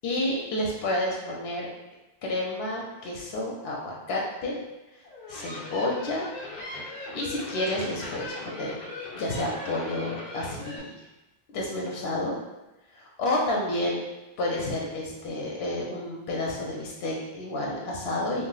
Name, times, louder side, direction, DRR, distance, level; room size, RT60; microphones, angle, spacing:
voice 1, 0.0-1.7 2.2-4.6 5.3-6.3 6.9-8.8 9.1-11.0 11.5-12.4 12.9-14.0 14.4-18.5, left 1 dB, 85° left, -2 dB, 0.8 m, -30 dB
sound 1, 5.0-10.8, left 2 dB, 55° left, 0.7 m, -39 dB
2.4 x 2.0 x 3.7 m, 1.0 s
omnidirectional pair, 1.0 m